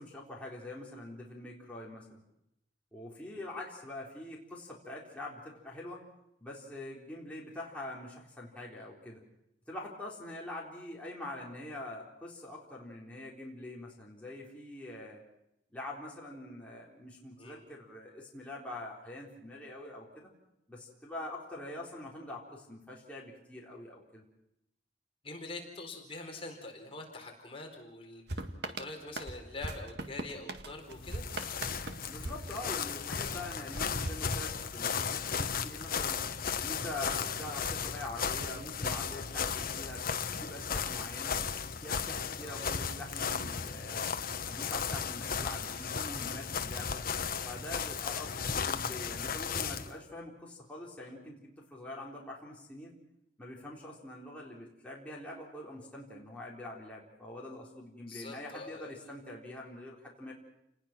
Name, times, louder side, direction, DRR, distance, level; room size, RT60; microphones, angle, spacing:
voice 1, 0.0-2.2 2.9-6.0 6.4-9.2 9.7-15.2 15.7-20.3 20.7-24.2 32.1-36.2 36.6-41.4 41.8-44.1 44.4-47.0 47.4-52.9 53.4-60.3, left 1 dB, 5° left, -4 dB, 4.0 m, -44 dB
voice 2, 25.2-31.2 42.4-42.7 58.1-59.1, left 2 dB, 30° left, 1 dB, 4.3 m, -45 dB
sound 1, 28.3-33.1 33.7-35.0, right 2 dB, 65° right, 1.8 m, -41 dB
sound 2, 30.8-49.9, left 6 dB, 55° left, 1.1 m, -35 dB
29.0 x 20.0 x 6.1 m, 0.82 s
head